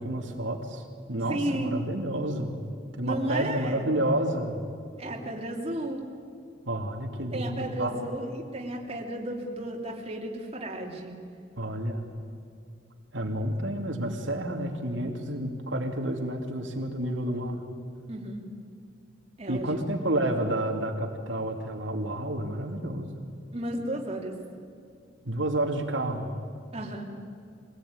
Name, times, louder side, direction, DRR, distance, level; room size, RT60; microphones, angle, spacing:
voice 1, 0.0-2.6 3.0-4.7 6.7-7.9 11.6-12.1 13.1-17.6 19.5-23.1 25.2-26.3, right 1 dB, 85° right, 2 dB, 2.6 m, -30 dB
voice 2, 1.3-1.8 3.0-3.9 5.0-6.0 7.3-11.2 18.1-18.5 19.4-19.9 23.5-24.3 26.7-27.1, right 1 dB, 35° right, -1 dB, 2.9 m, -33 dB
24.0 x 18.0 x 9.5 m, 2.4 s
head